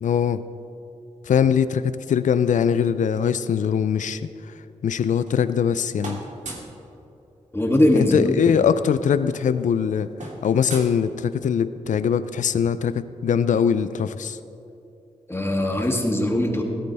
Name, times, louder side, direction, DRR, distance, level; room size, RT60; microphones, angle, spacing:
voice 1, 0.0-0.4 1.3-4.2 4.8-6.2 7.9-10.1 10.4-14.4, left 7 dB, 70° left, 13 dB, 0.5 m, -22 dB
sound 1, 4.9-5.7 6.0-6.8 8.2-8.3 8.5-8.7 9.0-11.6, right 2 dB, 65° right, 2.5 m, -39 dB
voice 2, 7.5-8.7 15.3-16.6, left 1 dB, 20° left, 0 dB, 2.5 m, -21 dB
17.0 x 13.0 x 3.5 m, 2.8 s
cardioid pair, 45°, 13 cm